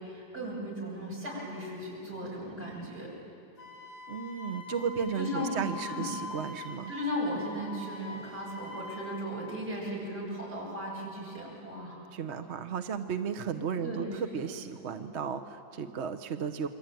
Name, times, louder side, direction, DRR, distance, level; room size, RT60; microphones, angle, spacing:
voice 1, 0.0-3.1 5.2-6.1 6.9-12.0 13.8-14.3, equal, 65° right, -4 dB, 8.6 m, -36 dB
Wind instrument woodwind instrument, 3.6-9.2, left 3 dB, 45° left, 4.2 m, -43 dB
voice 2, 4.1-6.9 12.1-16.7, right 6 dB, 45° right, 7 dB, 1.0 m, -34 dB
28.5 x 23.0 x 9.2 m, 2.6 s
omnidirectional pair, 1.9 m